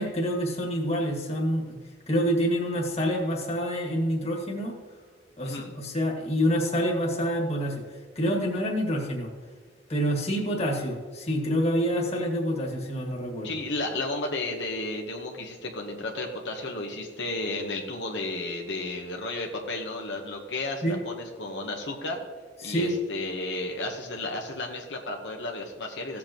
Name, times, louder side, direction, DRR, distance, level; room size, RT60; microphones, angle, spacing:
voice 1, 0.0-1.8 2.1-4.8 5.4-9.3 9.9-13.6 20.8-21.0 22.6-23.0, equal, 35° left, 0 dB, 1.8 m, -27 dB
voice 2, 13.4-22.2 22.6-26.2, left 2 dB, 80° left, 1 dB, 1.2 m, -33 dB
15.5 x 7.6 x 3.0 m, 1.5 s
head